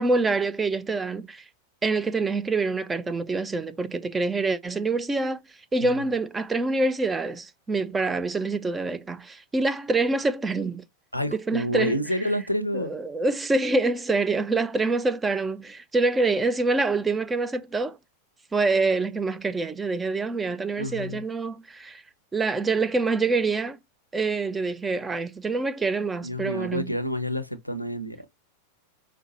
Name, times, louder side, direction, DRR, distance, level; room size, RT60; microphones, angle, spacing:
voice 1, 0.0-1.4 1.8-5.4 5.7-10.9 11.3-12.0 12.7-18.0 18.5-22.0 22.3-23.8 24.1-27.0, right 3 dB, 15° right, 0.4 m, -26 dB
voice 2, 11.1-12.9 20.8-21.2 26.2-28.2, equal, 90° left, 0.6 m, -29 dB
5.1 x 2.1 x 2.9 m
figure-of-eight pair, 90°, 0 cm